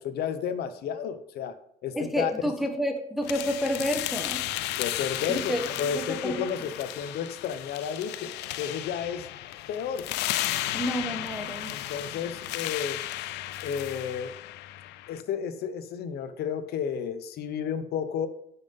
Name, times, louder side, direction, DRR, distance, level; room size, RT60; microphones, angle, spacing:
voice 1, 0.0-1.6 1.8-2.3 4.8-9.3 9.7-10.1 11.7-13.0 13.6-14.3 15.1-18.3, left 7 dB, 70° left, 11 dB, 1.0 m, -32 dB
voice 2, 1.9-4.5 5.3-6.5 10.7-11.8, equal, ahead, 3 dB, 1.4 m, -30 dB
sound 1, 3.2-15.2, left 14 dB, 85° left, 0.6 m, -34 dB
11.0 x 5.7 x 5.5 m, 0.75 s
cardioid pair, 110°, 17 cm